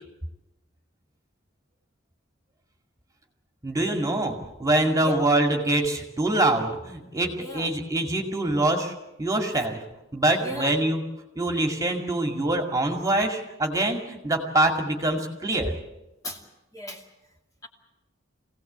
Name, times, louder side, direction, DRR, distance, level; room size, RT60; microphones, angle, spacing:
voice 1, 3.6-9.8 10.1-11.0 11.4-15.7, right 1 dB, 15° right, 3 dB, 2.3 m, -24 dB
voice 2, 7.4-7.7 10.4-10.7 16.2-16.4 16.7-17.0 17.6-17.7, equal, 20° left, 1 dB, 2.6 m, -35 dB
25.0 x 17.0 x 8.1 m, 0.96 s
head